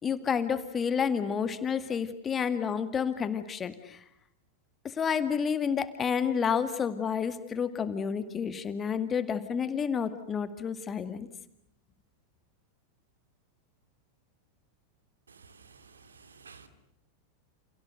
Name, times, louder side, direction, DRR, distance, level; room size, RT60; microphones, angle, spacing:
voice 1, 0.0-4.0 4.8-11.3, left 7 dB, 20° left, 11 dB, 2.1 m, -30 dB
voice 2, 15.4-15.8 16.0-16.7, right 5 dB, 70° right, 10 dB, 2.5 m, -53 dB
29.5 x 28.5 x 6.7 m, 0.70 s
figure-of-eight pair, 90°, 0 cm